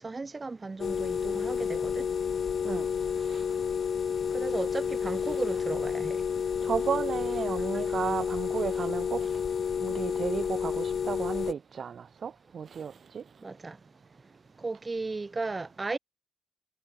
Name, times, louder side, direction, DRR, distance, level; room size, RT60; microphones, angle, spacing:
voice 1, 0.0-2.0 4.3-6.2 13.4-13.8 14.6-16.0, right 3 dB, 25° right, 0.5 m, -35 dB
sound 1, 0.8-11.5, left 7 dB, 55° left, 0.3 m, -30 dB
voice 2, 6.6-9.4 9.8-13.2, right 7 dB, 55° right, 0.8 m, -34 dB
cardioid pair, 90°, 0 cm